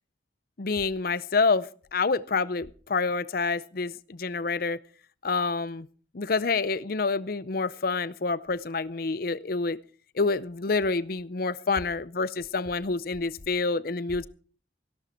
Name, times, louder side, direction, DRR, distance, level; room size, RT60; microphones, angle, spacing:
voice 1, 0.6-4.8 5.2-5.9 6.1-9.8 10.1-14.3, left 4 dB, 50° left, 18 dB, 0.6 m, -27 dB
17.0 x 11.0 x 4.4 m, 0.42 s
head